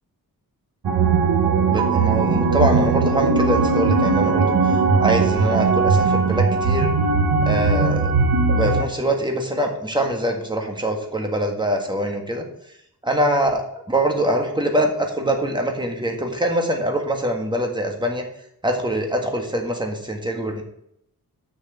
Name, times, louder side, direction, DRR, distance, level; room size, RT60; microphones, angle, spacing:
sound 1, 0.8-8.8, right 4 dB, 80° right, 1.3 m, -19 dB
voice 1, 1.7-4.5 5.0-6.9 7.4-8.1 8.5-12.4 13.0-18.2 18.6-20.6, right 1 dB, 10° right, 2 dB, 1.6 m, -23 dB
6.5 x 6.3 x 7.2 m, 0.74 s
wide cardioid pair, 135°, 38 cm